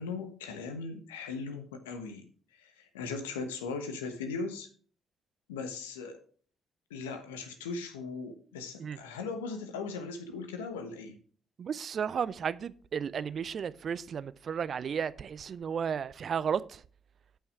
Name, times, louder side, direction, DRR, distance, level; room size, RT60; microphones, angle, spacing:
voice 1, 0.0-2.3 2.6-4.7 5.5-6.2 6.9-11.2, left 4 dB, 85° left, 1.1 m, -38 dB
voice 2, 11.6-16.8, right 7 dB, 55° right, 0.5 m, -33 dB
8.5 x 5.6 x 4.7 m
hypercardioid pair, 45°, 0 cm